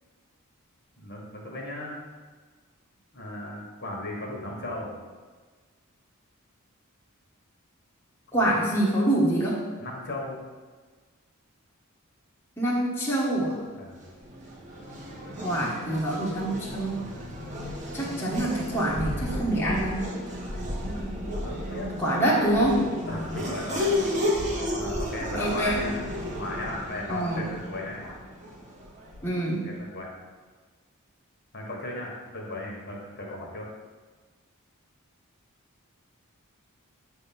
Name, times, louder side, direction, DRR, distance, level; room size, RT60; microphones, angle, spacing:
voice 1, 1.0-2.0 3.1-4.9 8.4-8.7 9.8-10.4 13.7-14.0 21.4-21.9 22.2-22.6 23.1-23.9 24.7-26.0 26.4-28.1 29.6-30.1 31.5-33.7, left 1 dB, 50° left, -2 dB, 1.6 m, -36 dB
voice 2, 8.3-9.6 12.6-13.6 15.4-17.0 17.9-20.0 22.0-22.8 25.4-25.8 27.1-27.4 29.2-29.6, right 1 dB, 10° left, -7 dB, 1.3 m, -25 dB
Race car auto racing / Accelerating revving vroom, 13.9-29.5, left 1 dB, 35° right, 1.3 m, -33 dB
8.1 x 3.6 x 5.9 m, 1.4 s
head